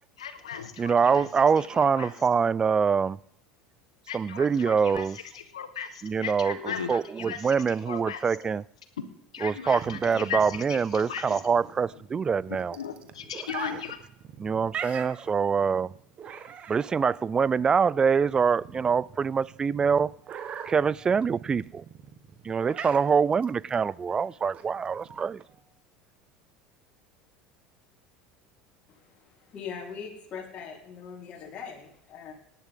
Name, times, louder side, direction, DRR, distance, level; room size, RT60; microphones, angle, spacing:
voice 1, 0.2-1.3 1.6-2.1 4.1-5.1 5.3-7.6 7.9-8.2 9.3-11.4 12.7-14.0, left 8 dB, 85° left, 10 dB, 1.4 m, -37 dB
voice 2, 0.8-3.2 4.1-5.2 6.0-8.6 9.4-12.8 14.4-15.9 16.7-20.1 20.4-21.8 22.4-25.4, right 6 dB, 25° right, 23 dB, 0.4 m, -25 dB
sound 1, 9.7-25.6, right 8 dB, 40° right, 1.4 m, -43 dB
voice 3, 28.9-32.3, left 6 dB, 40° left, -2 dB, 4.4 m, -41 dB
18.0 x 11.0 x 3.8 m, 0.70 s
hypercardioid pair, 80°, 3 cm